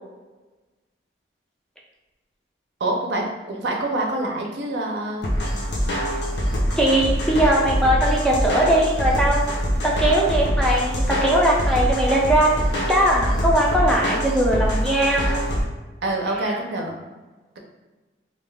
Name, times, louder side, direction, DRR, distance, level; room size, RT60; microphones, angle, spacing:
voice 1, 2.8-5.9 16.0-16.9, right 2 dB, 75° right, 1 dB, 0.5 m, -26 dB
sound 1, 5.2-15.6, equal, 75° left, 0.7 m, -24 dB
voice 2, 6.8-9.4 9.8-12.6 12.9-15.4, right 1 dB, 5° left, -3 dB, 0.3 m, -20 dB
2.5 x 2.2 x 3.2 m, 1.2 s
head